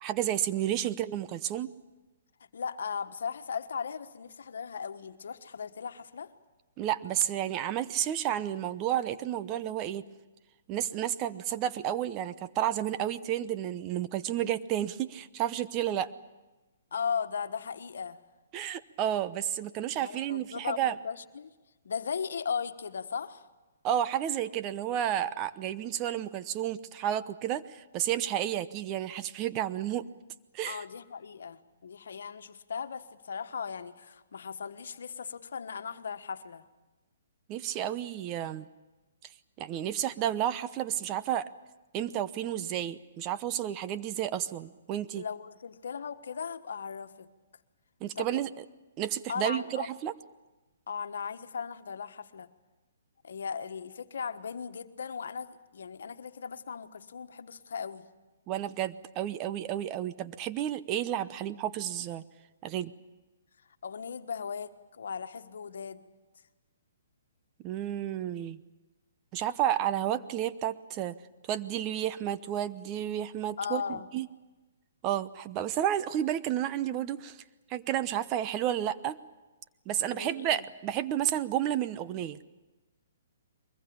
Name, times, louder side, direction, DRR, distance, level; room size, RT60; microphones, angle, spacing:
voice 1, 0.0-1.7 6.8-10.0 10.7-16.1 18.5-20.9 23.8-30.1 30.5-30.8 37.5-38.7 39.6-41.5 41.9-45.2 48.0-48.5 49.0-50.1 58.5-62.2 62.6-62.9 67.6-68.6 69.3-71.2 71.5-74.3 75.0-77.4 77.7-79.2 79.9-82.4, right 11 dB, 30° right, 13 dB, 0.8 m, -31 dB
voice 2, 2.5-6.3 16.9-18.2 20.0-21.5 21.8-23.5 30.7-36.6 45.1-47.3 48.1-48.4 49.3-49.9 50.9-52.5 53.2-58.1 63.8-66.1 73.6-74.1 80.1-80.7, left 6 dB, 75° left, 9 dB, 1.4 m, -37 dB
23.0 x 21.0 x 8.7 m, 1.1 s
hypercardioid pair, 145°, 0 cm